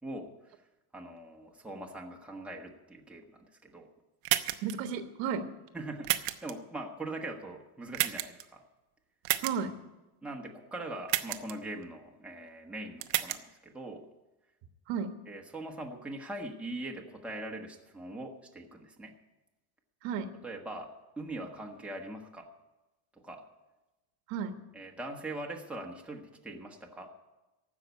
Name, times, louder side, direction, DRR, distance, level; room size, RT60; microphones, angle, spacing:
voice 1, 0.0-0.5 0.9-3.9 5.7-8.6 10.2-13.4 13.6-14.1 15.3-19.1 20.4-22.5 23.2-23.4 24.7-27.1, right 1 dB, 5° right, 0 dB, 1.4 m, -42 dB
sound 1, 4.3-4.7 6.0-6.5 7.9-8.4 9.3-9.5 11.1-11.5 13.0-13.4, right 16 dB, 85° right, 0.9 m, -30 dB
voice 2, 4.6-5.5 9.4-9.7 14.9-15.1 20.0-20.3 24.3-24.6, right 6 dB, 70° right, 8 dB, 1.5 m, -33 dB
15.5 x 6.0 x 9.5 m, 1.1 s
cardioid pair, 140°, 47 cm